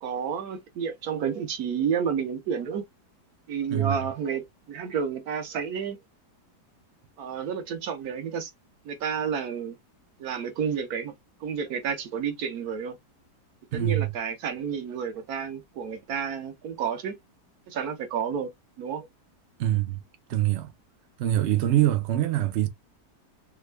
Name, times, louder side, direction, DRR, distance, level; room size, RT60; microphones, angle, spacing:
voice 1, 0.0-2.8 3.5-6.0 7.2-8.5 8.8-9.8 10.2-11.1 11.4-13.0 13.7-17.1 17.7-18.5 18.8-19.1, right 7 dB, 65° right, 1.3 m, -30 dB
voice 2, 13.7-14.1 19.6-20.0 20.3-20.7 21.2-22.7, right 13 dB, 80° right, 0.6 m, -24 dB
3.5 x 2.2 x 3.2 m
omnidirectional pair, 1.8 m